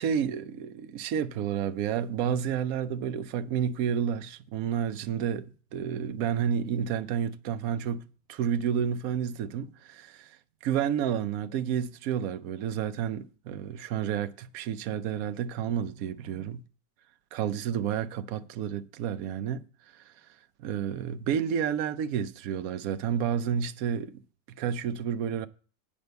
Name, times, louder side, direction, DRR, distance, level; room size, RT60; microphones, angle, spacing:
voice 1, 0.0-10.4 10.6-16.6 17.3-19.6 19.9-20.0 20.6-24.2 24.5-25.5, right 8 dB, 75° right, 0.8 m, -30 dB
8.7 x 5.3 x 7.9 m
omnidirectional pair, 2.2 m